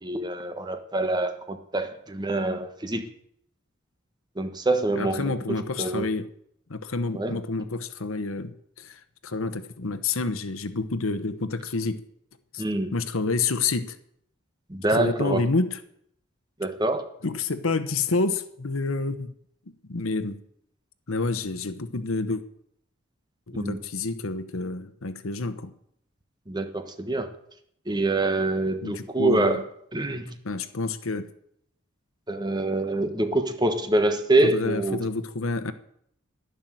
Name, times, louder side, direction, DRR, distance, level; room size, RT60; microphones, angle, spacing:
voice 1, 0.0-3.0 4.4-5.3 5.8-6.1 7.1-7.4 12.6-12.9 14.7-15.5 16.6-17.1 23.6-23.8 26.5-27.3 27.9-29.6 29.9-30.4 32.3-35.0, right 2 dB, 20° right, 8 dB, 1.2 m, -25 dB
voice 2, 5.0-6.3 6.7-12.0 12.5-12.6 12.9-14.0 14.9-15.8 17.2-19.3 19.9-20.4 21.1-22.4 23.5-25.7 28.8-29.6 30.4-31.3 34.4-35.7, left 3 dB, 85° left, 11 dB, 1.0 m, -28 dB
11.5 x 10.5 x 7.7 m, 0.71 s
head